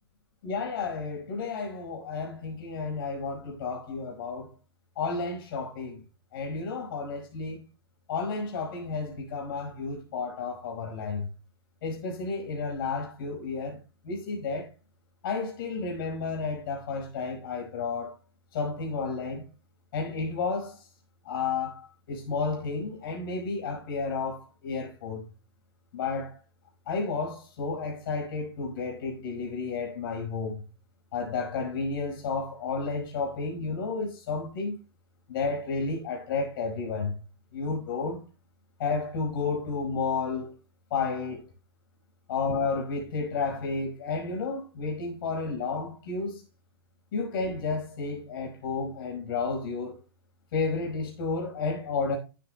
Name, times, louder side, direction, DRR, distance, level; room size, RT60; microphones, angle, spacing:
voice 1, 0.4-4.5 4.9-6.0 6.3-7.6 8.1-11.3 11.8-13.8 14.0-14.7 15.2-18.1 18.5-19.5 19.9-20.8 21.2-25.2 25.9-26.4 26.9-30.6 31.1-34.8 35.3-37.1 37.5-38.2 38.8-40.5 40.9-41.4 42.3-46.4 47.1-50.0 50.5-52.2, left 4 dB, 55° left, 5.1 m, -31 dB
15.5 x 8.0 x 2.2 m
hypercardioid pair, 145°, 14 cm